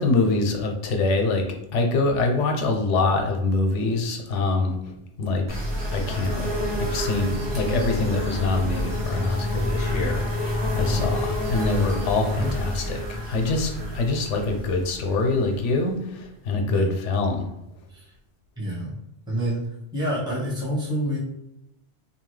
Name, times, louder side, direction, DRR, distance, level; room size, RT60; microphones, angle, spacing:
voice 1, 0.0-1.4 1.7-4.8 5.2-5.4 5.9-6.5 6.8-17.5, left 3 dB, 85° left, 3 dB, 0.9 m, -24 dB
sound 1, 5.5-16.1, equal, 30° right, 0.5 m, -29 dB
voice 2, 10.9-11.2 12.3-12.5 16.7-17.0 17.9-18.1 18.6-18.9 19.3-19.7 19.9-21.2, equal, 5° right, -7 dB, 0.9 m, -28 dB
2.7 x 2.2 x 3.1 m, 0.87 s
omnidirectional pair, 1.2 m